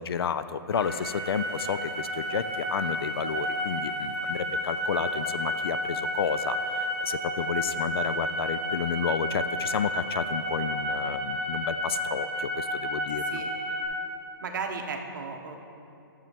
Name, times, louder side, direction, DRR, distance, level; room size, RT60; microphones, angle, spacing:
voice 1, 0.0-13.4, left 7 dB, 90° left, 13 dB, 0.4 m, -31 dB
sound 1, 0.7-13.8, equal, 5° right, 1.7 m, -31 dB
voice 2, 13.1-13.5 14.4-15.6, right 5 dB, 55° right, 3 dB, 1.0 m, -35 dB
12.0 x 7.3 x 3.4 m, 2.8 s
hypercardioid pair, 175°, 12 cm